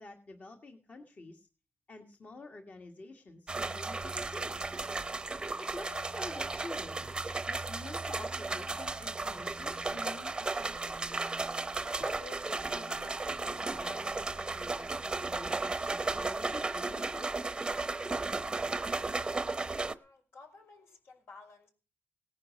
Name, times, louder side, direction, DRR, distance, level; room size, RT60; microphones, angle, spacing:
voice 1, 0.0-1.5 1.9-4.6 5.6-7.0 7.5-11.0 11.9-13.2 13.4-17.8, left 2 dB, 40° left, 4 dB, 1.8 m, -48 dB
sound 1, 3.5-19.9, right 3 dB, 20° right, 0.9 m, -35 dB
voice 2, 19.9-21.7, left 3 dB, 70° left, 3 dB, 5.7 m, -55 dB
18.5 x 10.5 x 6.5 m, 0.35 s
wide cardioid pair, 145°, 4 cm